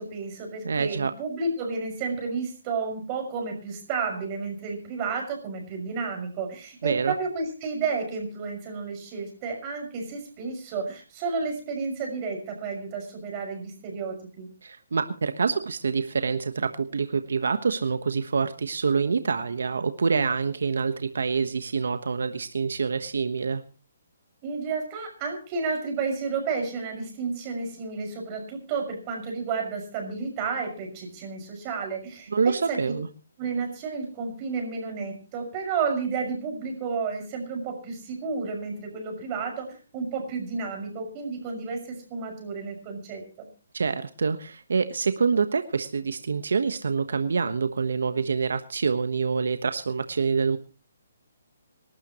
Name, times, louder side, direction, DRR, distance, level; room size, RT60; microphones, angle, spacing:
voice 1, 0.0-14.5 24.4-33.0 33.4-43.5, right 4 dB, 25° right, 3 dB, 6.1 m, -31 dB
voice 2, 0.6-1.1 6.8-7.1 14.6-23.6 32.3-33.1 43.7-50.6, right 5 dB, 80° right, 10 dB, 1.2 m, -26 dB
26.0 x 12.5 x 3.1 m, 0.35 s
hypercardioid pair, 160°, 0 cm